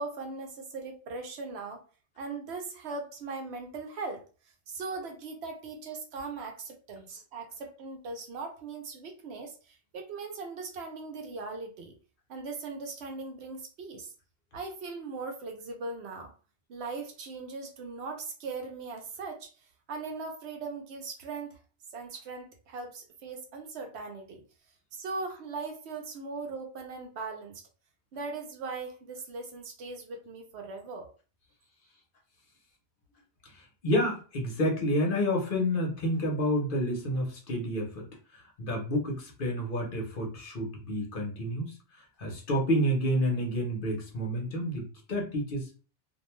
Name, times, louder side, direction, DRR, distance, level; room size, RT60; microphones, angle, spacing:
voice 1, 0.0-1.8 2.2-4.2 4.7-12.0 12.3-14.1 14.5-16.3 16.7-19.5 19.9-21.6 21.9-24.4 24.9-27.6 28.1-31.1, right 4 dB, 80° right, 3 dB, 0.9 m, -39 dB
voice 2, 33.8-38.1 38.6-41.7 42.2-45.7, equal, 55° left, -1 dB, 0.9 m, -29 dB
2.5 x 2.2 x 3.0 m, 0.36 s
omnidirectional pair, 1.1 m